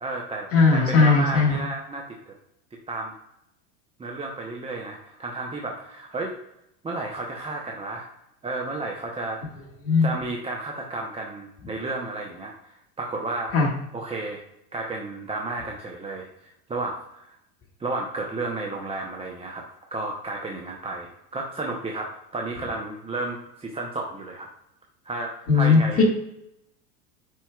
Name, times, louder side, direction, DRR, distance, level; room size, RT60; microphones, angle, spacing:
voice 1, 0.0-2.3 2.9-3.1 4.0-6.4 6.8-8.1 8.4-9.4 10.0-13.5 13.9-14.4 14.7-17.4 17.8-19.6 19.9-24.5 25.0-26.0, right 2 dB, 10° right, 0 dB, 0.6 m, -32 dB
voice 2, 0.5-1.6 9.8-10.1 13.5-13.7 25.5-26.0, left 4 dB, 25° left, -1 dB, 1.8 m, -18 dB
9.7 x 4.6 x 2.3 m, 0.81 s
hypercardioid pair, 110°, 50 cm